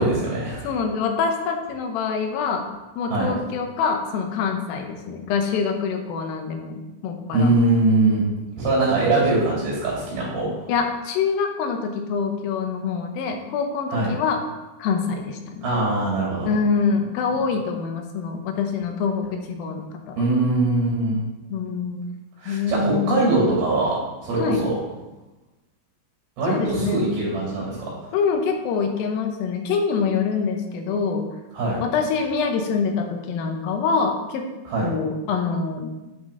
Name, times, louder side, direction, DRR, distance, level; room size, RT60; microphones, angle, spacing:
voice 1, 0.0-0.7 3.1-3.3 7.3-8.3 8.6-10.5 13.9-14.1 15.6-16.5 20.2-21.2 22.4-24.7 26.4-28.1 31.5-31.8 34.7-34.9, right 2 dB, 65° right, -5 dB, 4.8 m, -22 dB
voice 2, 0.6-2.6 3.0-6.7 7.0-7.5 9.1-9.2 9.5-9.6 10.7-14.4 14.8-15.7 16.5-20.2 21.5-22.0 22.5-23.3 24.4-24.6 26.5-27.0 28.1-31.2 31.8-34.5 34.8-35.9, left 5 dB, 75° left, 4 dB, 2.4 m, -25 dB
9.5 x 5.8 x 3.8 m, 1.1 s
omnidirectional pair, 4.7 m